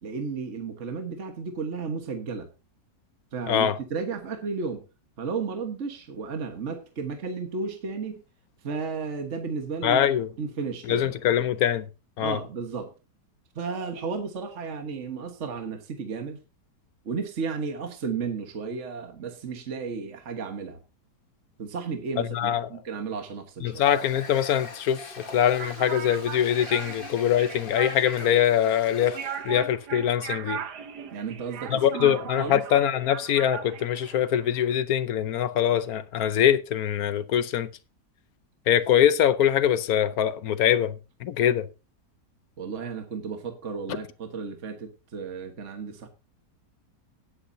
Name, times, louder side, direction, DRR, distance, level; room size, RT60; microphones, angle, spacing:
voice 1, 0.0-2.5 3.3-4.8 5.2-8.2 8.6-10.1 10.4-11.1 12.2-12.9 13.5-16.4 17.0-20.8 21.6-23.8 31.1-32.6 42.6-46.1, right 5 dB, 45° right, 1.6 m, -33 dB
voice 2, 3.5-3.8 9.8-10.3 10.9-11.9 12.2-12.4 22.3-22.7 23.6-25.0 25.3-29.2 29.4-30.6 31.7-37.7 38.7-41.7 43.9-44.0, left 10 dB, 65° left, 1.1 m, -23 dB
Water tap faucet, 23.7-29.5, left 3 dB, 35° left, 1.5 m, -43 dB
sound 1, 25.6-34.7, right 8 dB, 70° right, 1.6 m, -39 dB
17.5 x 8.7 x 2.7 m
omnidirectional pair, 1.9 m